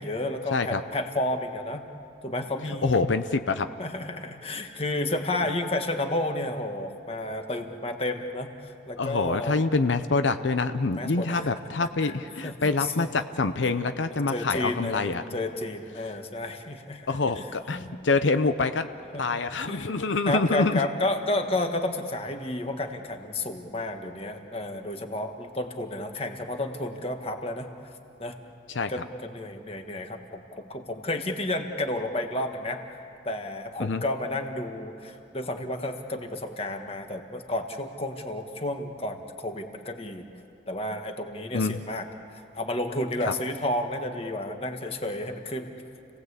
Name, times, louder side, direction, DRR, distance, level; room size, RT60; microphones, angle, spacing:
voice 1, 0.0-1.8 2.2-3.0 3.8-9.7 11.0-11.5 12.0-13.1 14.1-17.1 17.3-17.9 19.1-19.4 19.7-20.0 20.3-27.7 28.2-28.4 28.9-40.2 40.7-42.0 42.5-45.7, left 1 dB, 30° left, 5 dB, 1.6 m, -31 dB
voice 2, 0.5-0.8 2.8-3.7 9.0-15.2 17.1-18.9 19.2-20.8 28.7-28.9 33.8-34.0 41.5-41.8 43.2-43.3, left 3 dB, 85° left, 9 dB, 0.7 m, -26 dB
30.0 x 18.5 x 8.3 m, 2.7 s
head